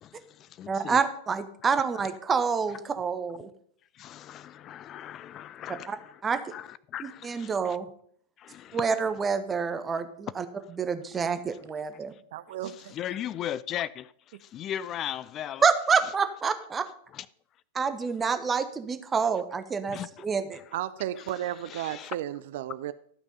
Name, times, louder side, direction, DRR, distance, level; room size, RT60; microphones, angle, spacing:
voice 1, 0.0-1.0 3.9-7.8 8.4-8.8 12.6-15.6 17.2-17.3 19.9-20.3 21.2-21.4 21.7-22.2, left 11 dB, 30° left, 0.3 m, -38 dB
voice 2, 0.7-3.5 5.7-6.0 6.2-6.4 7.0-7.9 8.7-12.1 15.6-16.9 17.7-20.6, right 5 dB, 20° right, 1.0 m, -27 dB
voice 3, 12.3-12.9 20.7-22.9, right 12 dB, 55° right, 0.4 m, -34 dB
13.0 x 6.0 x 5.3 m
figure-of-eight pair, 90°, 0 cm